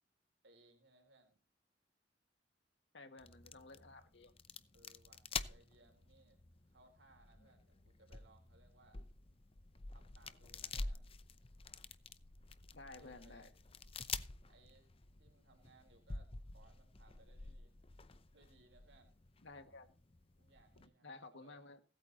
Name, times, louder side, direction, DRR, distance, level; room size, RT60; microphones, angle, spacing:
voice 1, 0.4-1.4 4.7-6.4 6.7-9.1 9.9-11.1 12.9-13.5 14.4-14.9 15.2-17.8 18.3-19.1 20.4-21.7, right 2 dB, 90° right, 4 dB, 3.7 m, -67 dB
voice 2, 2.9-4.3 12.7-13.5 19.4-19.9 20.8-21.8, left 3 dB, 80° left, 6 dB, 1.7 m, -54 dB
sound 1, 3.2-20.9, left 4 dB, 30° left, 0.7 m, -49 dB
16.5 x 8.8 x 4.0 m, 0.34 s
head